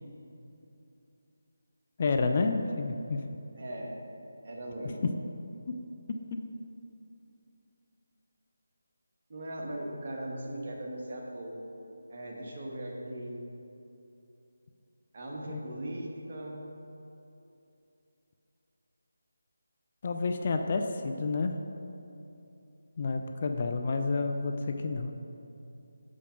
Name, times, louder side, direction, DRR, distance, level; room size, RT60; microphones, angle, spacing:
voice 1, 2.0-3.2 15.5-15.6 20.0-21.6 23.0-25.1, left 3 dB, 35° left, 5 dB, 0.4 m, -29 dB
voice 2, 3.6-3.9 4.4-5.0 9.3-11.6 12.1-13.4 15.1-16.7, right 1 dB, 40° right, -2 dB, 1.3 m, -39 dB
6.6 x 5.2 x 5.0 m, 2.8 s
figure-of-eight pair, 165°, 0 cm